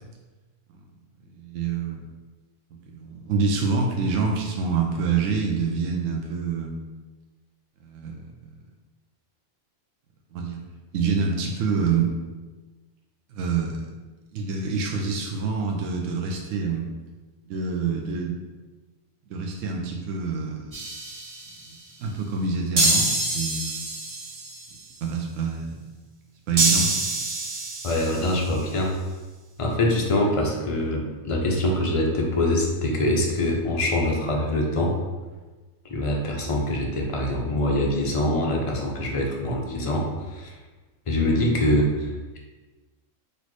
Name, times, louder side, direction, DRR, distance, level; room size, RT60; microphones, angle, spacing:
voice 1, 1.3-2.0 2.7-6.8 7.8-8.3 10.3-10.6 10.9-12.1 13.3-13.8 14.3-16.9 17.4-18.6 19.3-20.8 21.7-23.9 25.0-25.8 26.5-27.1, right 5 dB, 70° right, 0 dB, 0.9 m, -27 dB
sound 1, 20.7-21.6 22.8-24.7 26.6-28.5, right 2 dB, 30° right, 0.8 m, -26 dB
voice 2, 27.8-29.0 29.6-35.0 35.9-40.5 41.1-42.4, left 1 dB, 50° left, -1 dB, 0.4 m, -24 dB
4.1 x 3.0 x 3.1 m, 1.3 s
omnidirectional pair, 1.4 m